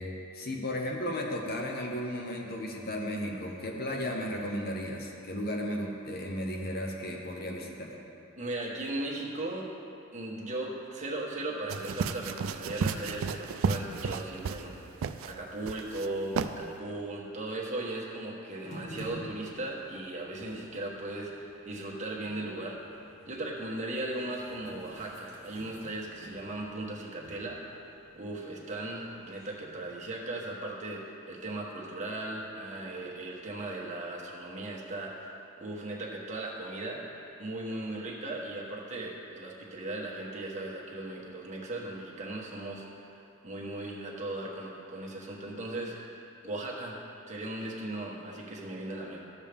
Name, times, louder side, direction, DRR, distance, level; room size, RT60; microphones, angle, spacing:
voice 1, 0.0-7.9, equal, 50° left, 0 dB, 0.9 m, -34 dB
voice 2, 8.4-9.7 10.1-14.8 15.2-22.9 23.3-27.6 28.1-37.0 37.4-42.9 43.4-46.0 46.4-47.0 47.3-49.2, right 2 dB, 35° right, -3 dB, 1.2 m, -37 dB
sound 1, 11.7-14.7 15.0-15.3 15.6-16.1 16.3-16.5, right 5 dB, 80° right, 0.4 m, -32 dB
sound 2, 18.6-30.0, equal, 75° left, 1.8 m, -50 dB
12.5 x 7.2 x 3.4 m, 2.7 s
head